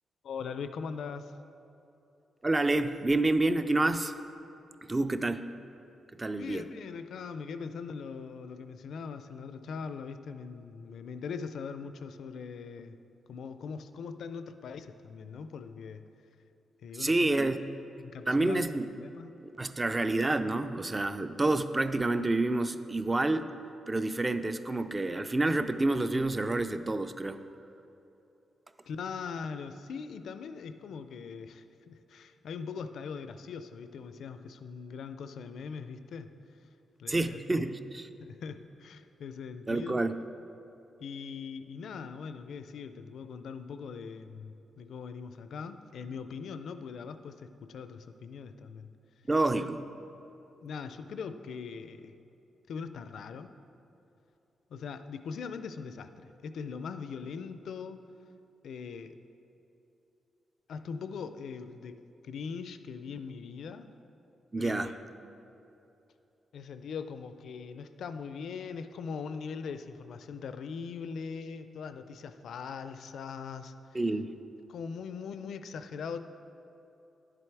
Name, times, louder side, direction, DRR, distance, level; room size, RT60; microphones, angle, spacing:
voice 1, 0.2-1.3 6.4-13.0 13.3-16.0 16.8-17.4 18.0-18.6 18.9-19.3 19.7-19.8 28.8-36.3 37.0-37.4 38.2-40.0 41.0-48.9 50.6-52.2 52.7-53.5 54.7-58.0 58.6-59.2 60.7-63.9 64.6-65.0 66.5-74.0 74.7-76.2, left 5 dB, 75° left, 10 dB, 0.4 m, -41 dB
voice 2, 2.4-4.1 4.9-5.5 6.2-6.7 17.0-17.5 18.3-18.9 19.6-23.5 23.9-27.4 37.1-38.1 39.7-40.2 49.3-49.8 64.5-64.9 73.9-74.3, right 2 dB, 20° right, 10 dB, 0.4 m, -28 dB
10.5 x 7.6 x 4.6 m, 2.9 s
wide cardioid pair, 135°, 0 cm